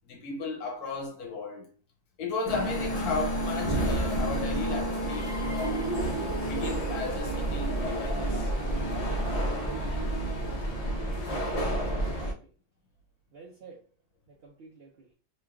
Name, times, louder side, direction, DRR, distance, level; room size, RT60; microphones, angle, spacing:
voice 1, 0.1-1.7 2.2-5.9 6.5-8.5 8.8-9.2, left 4 dB, 90° left, 1.4 m, -35 dB
sound 1, 2.5-12.3, right 1 dB, 65° left, 0.3 m, -30 dB
voice 2, 11.7-12.5 13.3-13.8 14.3-15.1, right 4 dB, 55° right, 0.7 m, -50 dB
3.0 x 2.3 x 3.5 m
omnidirectional pair, 1.6 m